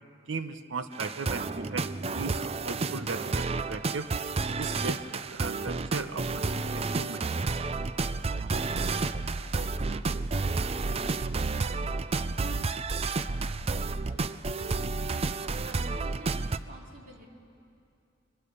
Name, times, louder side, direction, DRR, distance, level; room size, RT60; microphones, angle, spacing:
voice 1, 0.3-1.9 2.1-4.1 4.6-7.2, right 3 dB, 85° right, 10 dB, 0.9 m, -37 dB
sound 1, 0.9-16.6, right 3 dB, 30° right, 0.5 m, -31 dB
voice 2, 14.1-14.8 15.6-17.3, equal, 50° right, 0 dB, 2.8 m, -50 dB
24.5 x 21.0 x 6.8 m, 2.6 s
head